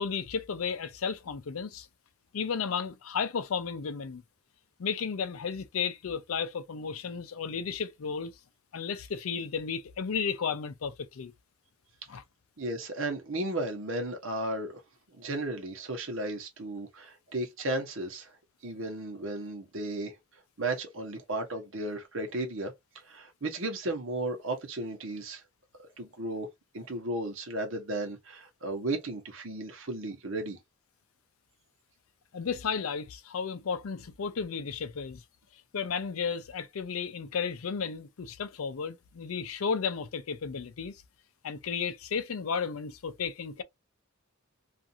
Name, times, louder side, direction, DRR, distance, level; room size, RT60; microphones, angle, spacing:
voice 1, 0.0-1.9 2.3-4.2 4.8-8.3 8.7-11.3 12.1-12.2 32.3-35.2 35.7-41.0 41.4-43.6, left 6 dB, 90° left, 0.5 m, -33 dB
voice 2, 12.6-14.8 15.1-18.3 18.6-20.2 20.6-25.4 26.0-26.5 26.7-30.6, right 2 dB, 65° right, 0.9 m, -34 dB
2.5 x 2.4 x 2.7 m
head